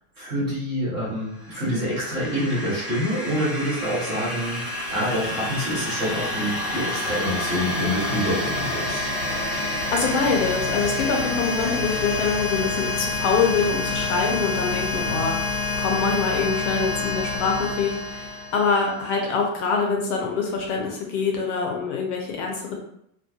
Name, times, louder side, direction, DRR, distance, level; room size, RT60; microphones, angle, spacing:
voice 1, 0.2-4.6 4.9-9.1 15.0-15.2, equal, 10° right, -9 dB, 0.3 m, -27 dB
sound 1, 1.4-19.0, left 2 dB, 20° left, 0.8 m, -28 dB
voice 2, 9.9-22.8, left 5 dB, 50° left, 1 dB, 0.6 m, -25 dB
2.8 x 2.3 x 2.2 m, 0.75 s
supercardioid pair, 160°, 46 cm